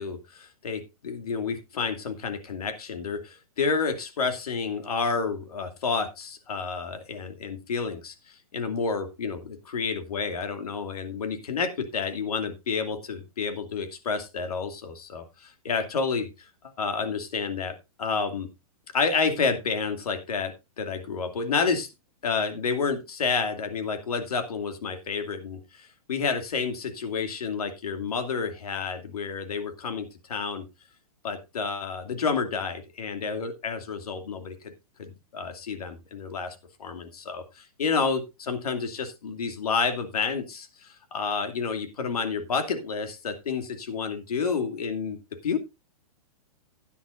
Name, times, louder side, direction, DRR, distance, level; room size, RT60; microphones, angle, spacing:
voice 1, 0.0-16.5 16.8-18.5 18.9-21.9 22.2-30.7 31.2-34.7 35.0-45.2 45.4-45.6, left 5 dB, 75° left, 7 dB, 2.5 m, -30 dB
14.5 x 10.0 x 2.5 m, 0.25 s
hypercardioid pair, 175°, 19 cm